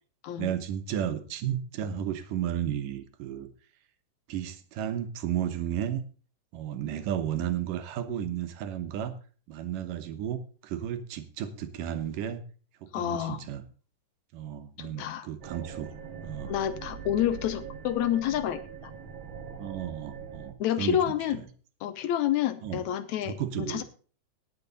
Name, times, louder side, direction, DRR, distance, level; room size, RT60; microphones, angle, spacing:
voice 1, 0.4-3.5 4.3-6.0 6.5-9.1 9.5-12.4 12.8-13.6 14.3-15.9 16.2-16.5 19.5-21.1 22.6-22.8 23.2-23.8, right 10 dB, 85° right, 9 dB, 2.7 m, -33 dB
voice 2, 12.9-13.4 14.8-15.3 16.5-18.6 20.6-21.4 21.8-23.8, left 11 dB, 75° left, 12 dB, 1.9 m, -29 dB
sound 1, 15.4-20.5, right 7 dB, 55° right, 1.5 m, -42 dB
18.5 x 6.7 x 4.0 m, 0.40 s
omnidirectional pair, 3.7 m